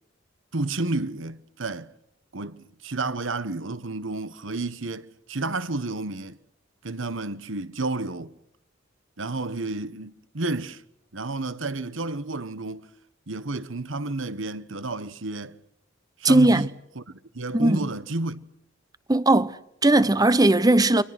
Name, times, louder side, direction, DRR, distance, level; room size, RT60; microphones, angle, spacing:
voice 1, 0.5-1.9 2.3-6.4 6.8-8.3 9.2-10.8 11.1-12.9 13.3-15.6 16.2-18.5, right 2 dB, 75° right, 1.3 m, -31 dB
voice 2, 16.2-16.7 17.5-17.8 19.1-21.0, right 2 dB, 20° right, 1.0 m, -18 dB
30.0 x 25.5 x 6.1 m
head